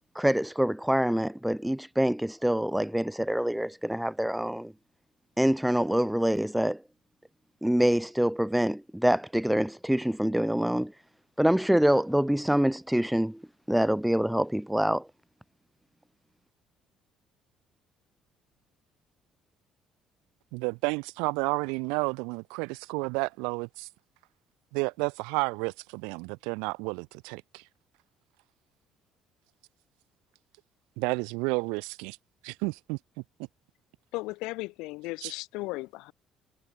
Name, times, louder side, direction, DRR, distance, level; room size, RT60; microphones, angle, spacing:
voice 1, 0.1-4.7 5.4-6.8 7.6-10.9 11.4-13.4 13.7-15.1, equal, 5° right, 0.8 m, -25 dB
voice 2, 20.5-23.9 24.7-27.6 31.0-32.2 32.4-33.0 35.2-35.3, right 31 dB, 85° right, 0.8 m, -31 dB
voice 3, 34.1-36.1, left 22 dB, 80° left, 2.6 m, -36 dB
hypercardioid pair, 65°, 0 cm